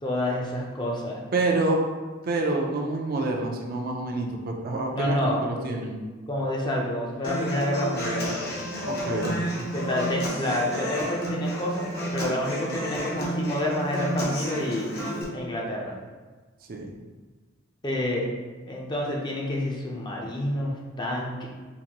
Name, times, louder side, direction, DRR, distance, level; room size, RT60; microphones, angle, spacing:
voice 1, 0.0-1.2 4.9-5.4 6.3-8.4 9.2-9.3 9.7-14.9 15.3-16.0 17.8-18.3 18.7-21.5, left 1 dB, 25° left, -3 dB, 0.5 m, -28 dB
voice 2, 1.3-1.8 2.2-6.0 8.8-9.7 16.7-16.9, right 2 dB, 50° right, 0 dB, 0.4 m, -27 dB
Human voice / Acoustic guitar, 7.2-15.2, equal, 55° left, 0.8 m, -31 dB
3.9 x 2.6 x 2.9 m, 1.4 s
head